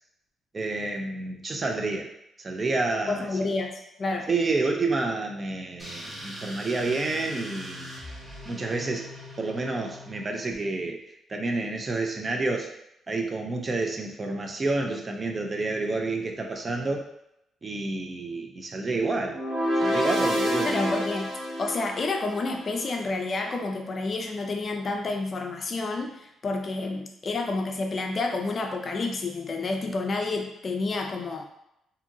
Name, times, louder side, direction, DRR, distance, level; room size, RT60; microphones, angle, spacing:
voice 1, 0.5-2.1 2.4-3.3 4.3-7.9 8.5-9.1 9.4-11.0 11.3-12.7 13.1-17.1 17.6-19.4 19.8-20.9, right 3 dB, 35° right, 3 dB, 0.4 m, -29 dB
voice 2, 3.1-4.3 20.6-21.3 21.6-31.4, left 3 dB, 45° left, 3 dB, 0.4 m, -29 dB
sound 1, 5.8-10.6, left 1 dB, 15° right, 1.1 m, -41 dB
sound 2, 19.3-22.6, equal, 50° right, 0.9 m, -28 dB
2.7 x 2.6 x 2.5 m, 0.82 s
cardioid pair, 90°, 0 cm